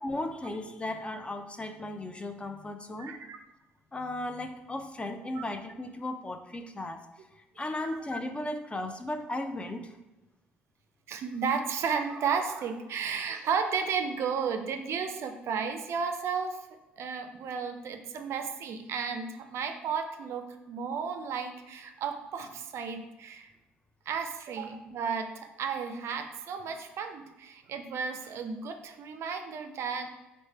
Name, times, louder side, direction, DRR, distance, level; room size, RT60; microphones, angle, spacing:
voice 1, 0.0-3.1 3.9-7.0 7.4-10.0 17.4-17.5, left 1 dB, 20° left, 7 dB, 0.4 m, -36 dB
voice 2, 3.0-3.4 5.4-5.5 7.8-7.9 11.1-16.7 17.0-23.5 24.1-30.1, right 6 dB, 55° right, 7 dB, 0.4 m, -33 dB
3.1 x 2.1 x 4.1 m, 1.1 s
hypercardioid pair, 55°, 5 cm